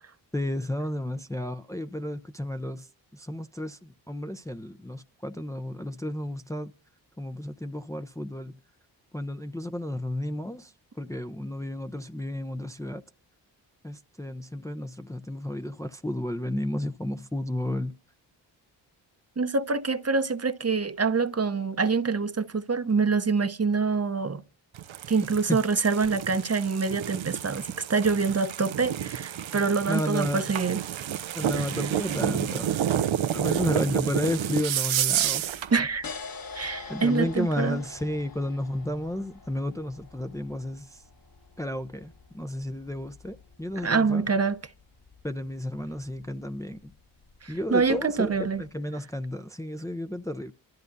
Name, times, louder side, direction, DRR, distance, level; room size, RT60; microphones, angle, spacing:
voice 1, 0.3-2.9 3.1-6.7 7.2-8.5 9.1-13.0 13.8-17.9 25.5-25.6 29.9-30.4 31.4-32.7 33.3-35.4 36.9-41.0 41.6-44.3 45.2-46.9 47.5-50.5, left 1 dB, 5° left, 0.7 m, -32 dB
voice 2, 19.4-24.4 25.1-31.0 31.6-31.8 35.7-36.0 36.5-37.8 43.8-44.6 47.4-48.6, right 4 dB, 30° right, 0.9 m, -26 dB
sound 1, 24.7-35.7, right 10 dB, 70° right, 0.8 m, -30 dB
sound 2, 35.1-48.7, left 4 dB, 45° left, 1.7 m, -47 dB
27.5 x 13.5 x 2.7 m
supercardioid pair, 40°, 48 cm